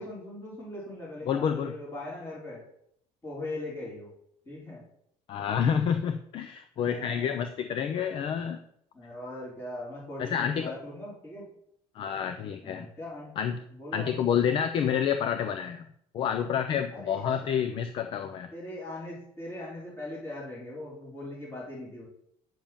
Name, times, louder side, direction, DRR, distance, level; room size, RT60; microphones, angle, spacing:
voice 1, 0.0-2.6 3.2-4.1 4.4-4.8 6.7-7.5 8.9-11.5 12.6-13.3 13.7-14.3 16.9-17.2 18.5-22.1, left 1 dB, 20° left, -4 dB, 5.0 m, -40 dB
voice 2, 1.3-1.7 5.3-8.6 10.2-10.7 11.9-12.9 13.4-13.6 13.9-15.9 16.1-18.5, left 8 dB, 45° left, 9 dB, 0.7 m, -28 dB
9.2 x 7.4 x 7.2 m, 0.70 s
cardioid pair, 175°, 13 cm